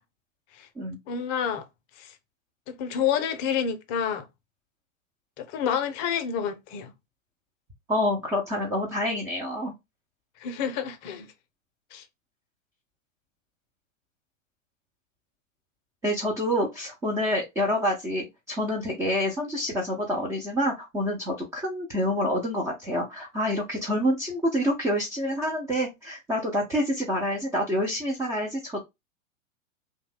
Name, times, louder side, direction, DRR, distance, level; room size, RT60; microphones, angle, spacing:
voice 1, 1.1-1.7 2.0-2.1 2.7-4.3 5.4-6.9 10.4-11.3 11.9-12.0, left 8 dB, 35° left, 0.6 m, -29 dB
voice 2, 7.9-9.7 16.0-28.8, equal, 10° right, 0.4 m, -27 dB
2.6 x 2.2 x 3.2 m
figure-of-eight pair, 100°, 39 cm